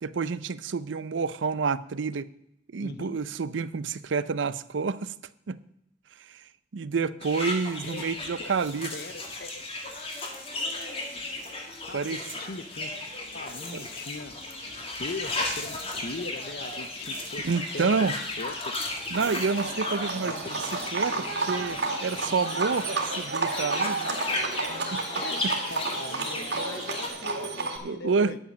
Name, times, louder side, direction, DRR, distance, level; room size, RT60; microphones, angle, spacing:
voice 1, 0.0-2.3 2.7-5.1 5.5-5.6 6.3-6.4 6.7-8.9 11.9-12.2 13.7-13.8 17.4-18.1 19.1-20.4 20.9-24.0 24.9-25.0 25.4-25.5 27.8-28.3, right 5 dB, 85° right, 16 dB, 0.5 m, -28 dB
voice 2, 2.8-3.2 7.8-8.5 8.9-9.6 11.9-12.9 13.3-18.6 20.2-20.3 24.3-24.4 25.2-25.4 25.7-28.4, left 3 dB, 55° left, 12 dB, 0.8 m, -40 dB
sound 1, 7.2-27.1, left 2 dB, 30° left, 1.8 m, -35 dB
Livestock farm animals working animals, 19.1-27.8, right 3 dB, 65° right, 1.9 m, -31 dB
10.0 x 8.7 x 6.2 m, 0.78 s
head